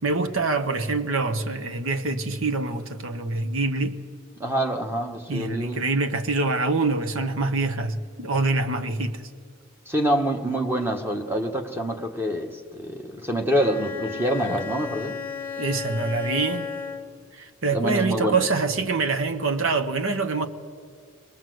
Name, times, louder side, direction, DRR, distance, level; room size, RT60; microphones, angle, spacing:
voice 1, 0.0-3.9 5.3-9.2 15.6-16.7 17.4-20.5, right 3 dB, 80° right, 1.2 m, -25 dB
voice 2, 4.4-5.8 9.9-15.2 17.7-18.4, right 1 dB, 10° right, 1.3 m, -26 dB
Bowed string instrument, 13.5-17.3, left 5 dB, 10° left, 1.3 m, -34 dB
22.0 x 19.5 x 7.9 m
head